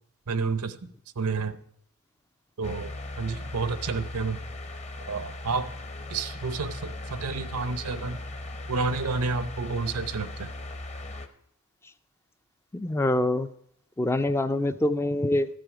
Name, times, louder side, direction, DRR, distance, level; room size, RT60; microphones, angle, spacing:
voice 1, 0.3-1.6 2.6-4.4 5.1-5.7 6.1-8.2 8.7-10.5, right 4 dB, 90° right, 12 dB, 0.8 m, -30 dB
sound 1, 2.6-11.3, left 2 dB, 30° left, 0.8 m, -38 dB
voice 2, 12.7-13.5 14.0-15.5, left 1 dB, 10° left, 11 dB, 0.3 m, -25 dB
12.5 x 7.6 x 5.0 m, 0.72 s
head